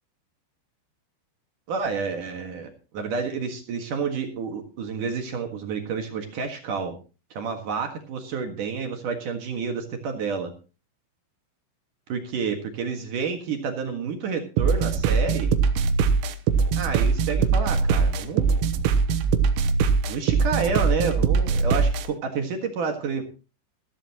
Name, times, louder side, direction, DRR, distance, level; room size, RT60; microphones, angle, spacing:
voice 1, 1.7-7.0 7.3-10.5 12.1-15.6 16.8-18.6 20.1-23.2, right 5 dB, 60° right, 4 dB, 2.3 m, -29 dB
sound 1, 14.6-22.1, right 5 dB, 85° right, 3.8 m, -22 dB
15.5 x 14.5 x 3.0 m, 0.32 s
omnidirectional pair, 5.9 m